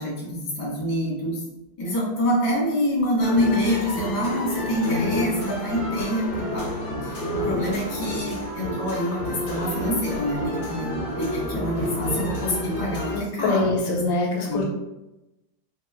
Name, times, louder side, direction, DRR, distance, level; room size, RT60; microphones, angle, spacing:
voice 1, 0.0-1.4 1.8-6.7 7.0-14.0 14.4-14.6, equal, 25° left, -6 dB, 0.7 m, -26 dB
sound 1, 3.2-13.2, left 1 dB, 65° left, 0.8 m, -30 dB
Wind instrument woodwind instrument, 5.3-13.5, right 1 dB, 65° right, 0.9 m, -38 dB
voice 2, 13.1-14.6, left 3 dB, 85° left, -1 dB, 1.4 m, -24 dB
3.0 x 2.2 x 3.2 m, 0.97 s
omnidirectional pair, 2.1 m